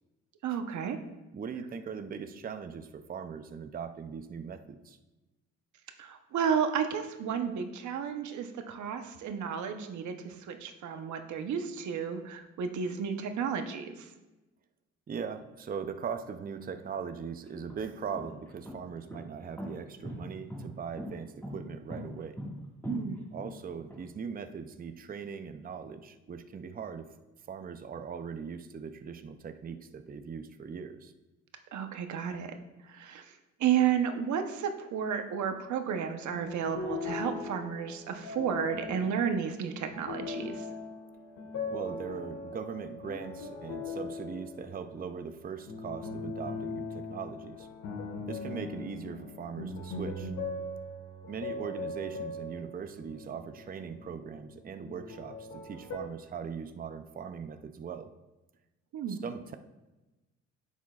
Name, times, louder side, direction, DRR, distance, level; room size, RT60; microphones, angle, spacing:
voice 1, 0.4-1.0 6.0-14.1 22.9-23.2 31.7-32.5 32.9-40.7 58.9-59.2, right 7 dB, 70° right, 7 dB, 0.9 m, -32 dB
voice 2, 1.3-5.0 15.1-22.4 23.3-27.1 27.5-31.1 41.7-47.7 48.3-50.3 51.3-58.1 59.1-59.5, right 6 dB, 30° right, 9 dB, 0.5 m, -40 dB
sound 1, 16.7-16.8 17.5-24.0, equal, 10° left, 1.8 m, -41 dB
sound 2, 36.2-45.1 45.7-54.6 54.8-56.0, left 3 dB, 75° left, 1.6 m, -40 dB
10.0 x 7.3 x 2.4 m, 1.1 s
cardioid pair, 90°, 30 cm